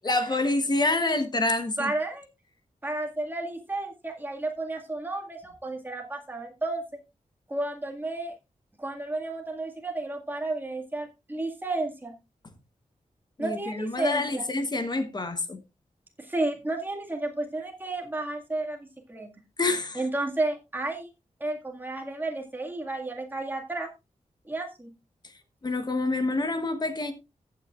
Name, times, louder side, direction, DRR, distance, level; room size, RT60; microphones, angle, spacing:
voice 1, 0.0-1.9 13.4-15.6 19.6-20.0 25.6-27.1, left 2 dB, 35° left, 1.1 m, -27 dB
voice 2, 1.8-2.3 2.8-7.0 7.5-8.3 8.8-12.1 13.4-14.4 16.2-19.3 19.9-21.1 21.4-23.9 24.4-24.9, right 2 dB, 15° right, 2.0 m, -32 dB
15.0 x 9.1 x 2.5 m
wide cardioid pair, 180°, 13 cm